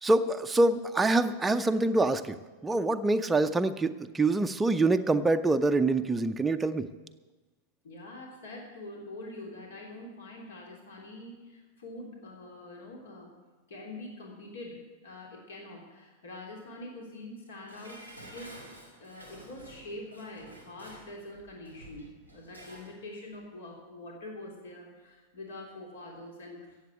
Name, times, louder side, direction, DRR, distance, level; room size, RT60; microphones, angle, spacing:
voice 1, 0.0-6.9, right 2 dB, 10° right, 7 dB, 0.6 m, -25 dB
voice 2, 7.8-13.3 13.7-18.6 19.0-26.8, left 2 dB, 60° left, -1 dB, 3.2 m, -45 dB
Dishes pots and pans, 17.7-23.0 23.3-23.4, right 1 dB, 90° left, 3.0 m, -51 dB
15.0 x 8.2 x 8.0 m, 1.2 s
figure-of-eight pair, 90°, 0 cm